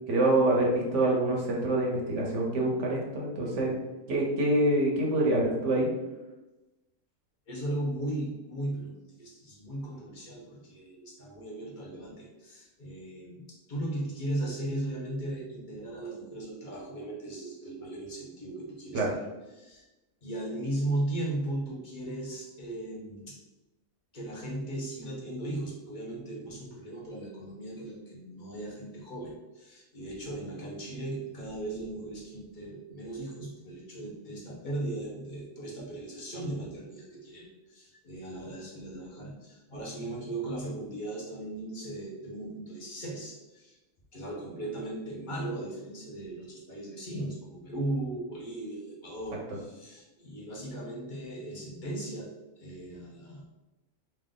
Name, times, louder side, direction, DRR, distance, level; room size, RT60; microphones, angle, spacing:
voice 1, 0.1-3.8 4.1-5.9 18.9-19.1, right 1 dB, 60° right, -1 dB, 1.1 m, -26 dB
voice 2, 7.5-19.2 19.5-19.9 20.2-23.4 24.1-43.8 44.1-53.4, right 1 dB, 40° left, -3 dB, 0.9 m, -37 dB
3.2 x 2.5 x 3.7 m, 1.1 s
omnidirectional pair, 1.5 m